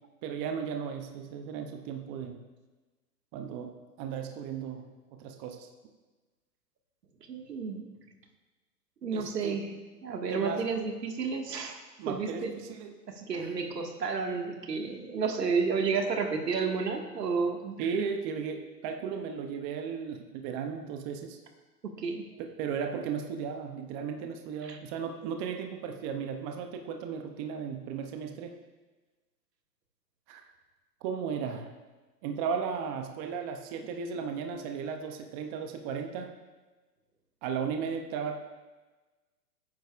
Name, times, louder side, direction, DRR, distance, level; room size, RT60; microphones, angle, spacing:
voice 1, 0.2-2.4 3.3-5.7 9.1-9.6 10.3-10.7 12.0-12.9 13.3-13.5 17.8-21.4 22.4-28.5 30.3-30.4 31.0-31.7 32.2-36.3 37.4-38.4, right 6 dB, 20° right, 4 dB, 0.5 m, -35 dB
voice 2, 7.3-7.9 9.0-9.7 10.0-11.8 12.1-12.5 13.1-17.8 21.8-22.2 24.6-24.8, right 5 dB, 80° right, 3 dB, 1.8 m, -31 dB
20.5 x 9.4 x 2.4 m, 1.2 s
hypercardioid pair, 125°, 48 cm